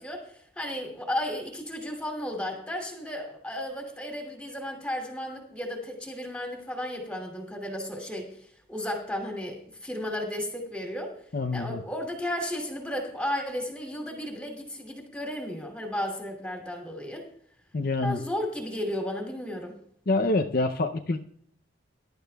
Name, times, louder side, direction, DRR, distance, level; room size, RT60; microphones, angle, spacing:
voice 1, 0.0-8.3 8.7-11.1 11.5-17.3 18.0-19.7, left 1 dB, 5° left, 2 dB, 2.8 m, -34 dB
voice 2, 11.3-11.8 17.7-18.2 20.1-21.2, left 2 dB, 50° left, 5 dB, 0.6 m, -26 dB
21.5 x 12.0 x 2.3 m, 0.65 s
head